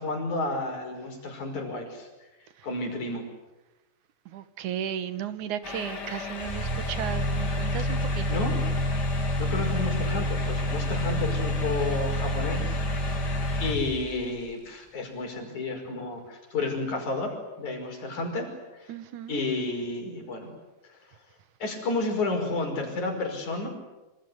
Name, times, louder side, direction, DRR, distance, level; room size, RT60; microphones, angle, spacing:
voice 1, 0.0-2.1 2.6-3.3 7.8-7.9 8.3-8.6 9.4-13.2 13.6-18.9 19.3-20.5 21.6-23.7, left 2 dB, 75° left, 4 dB, 6.8 m, -31 dB
voice 2, 4.3-8.4 18.9-19.4, right 9 dB, 80° right, 12 dB, 2.9 m, -35 dB
sound 1, 5.6-13.7, left 4 dB, 35° left, 2.4 m, -37 dB
sound 2, 6.3-14.3, equal, 10° right, 5.6 m, -28 dB
27.0 x 26.0 x 8.1 m, 1.1 s
omnidirectional pair, 3.4 m